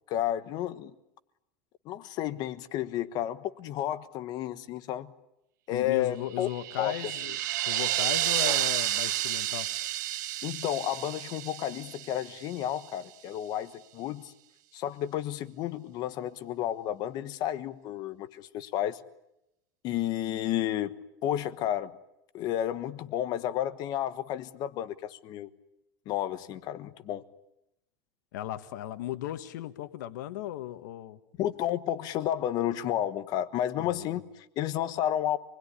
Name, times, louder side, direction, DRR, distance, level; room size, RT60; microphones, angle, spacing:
voice 1, 0.1-0.9 1.8-5.1 5.7-6.5 6.8-6.9 10.4-14.3 14.7-19.0 19.8-20.9 21.2-22.0 22.3-25.5 26.1-27.2 31.4-35.4, left 11 dB, 45° left, 12 dB, 1.3 m, -31 dB
voice 2, 5.7-7.4 7.6-9.7 28.3-31.2 33.8-34.2, left 13 dB, 85° left, 10 dB, 1.5 m, -36 dB
sound 1, 6.4-12.6, right 15 dB, 85° right, 1.1 m, -31 dB
28.0 x 20.5 x 10.0 m, 0.87 s
supercardioid pair, 150°, 10 cm